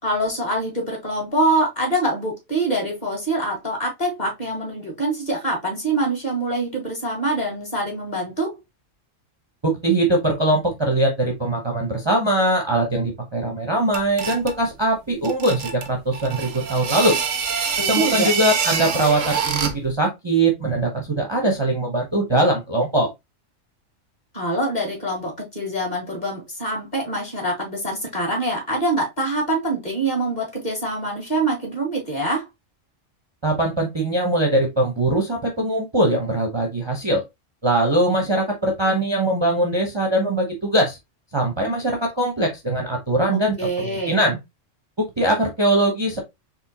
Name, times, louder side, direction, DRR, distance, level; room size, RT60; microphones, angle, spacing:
voice 1, 0.0-8.6 17.8-18.4 24.3-32.5 43.3-44.2, right 1 dB, 35° left, 2.1 m, -25 dB
voice 2, 9.6-17.2 17.9-23.1 33.4-37.2 37.6-41.0 41.3-44.4 45.0-46.2, right 1 dB, 25° right, 0.8 m, -21 dB
sound 1, 13.9-14.6 15.2-19.9, right 6 dB, 85° right, 1.3 m, -25 dB
4.3 x 3.2 x 2.9 m
omnidirectional pair, 1.3 m